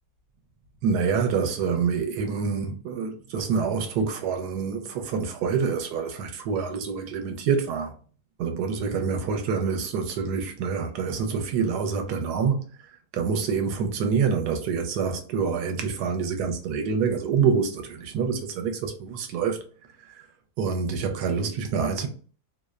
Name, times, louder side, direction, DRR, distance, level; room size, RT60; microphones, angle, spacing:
voice 1, 0.8-7.9 8.4-12.6 13.1-19.6 20.1-20.2 20.6-22.1, right 6 dB, 80° right, 1.1 m, -26 dB
2.8 x 2.0 x 2.3 m
omnidirectional pair, 1.7 m